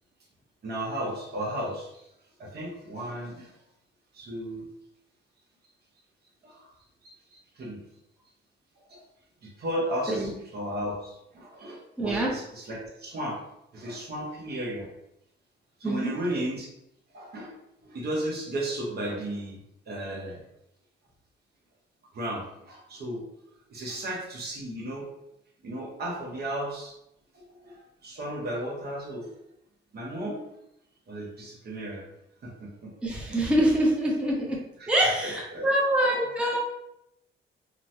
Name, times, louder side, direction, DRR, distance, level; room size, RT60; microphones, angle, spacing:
voice 1, 0.6-2.1 2.4-3.6 4.1-4.7 6.4-6.7 7.0-7.8 8.8-9.0 9.4-13.4 13.7-14.9 15.8-16.7 17.1-17.6 17.8-19.6 19.9-20.4 22.1-23.3 23.7-25.1 25.6-26.9 27.3-29.3 29.9-30.4 31.1-32.0 32.4-33.4 34.8-34.9 35.2-35.7, right 1 dB, 55° right, -2 dB, 0.9 m, -34 dB
voice 2, 12.0-12.3 15.8-16.1 33.0-34.6 34.9-36.6, right 1 dB, 5° right, -4 dB, 0.7 m, -25 dB
3.0 x 2.1 x 2.7 m, 0.81 s
cardioid pair, 90°, 20 cm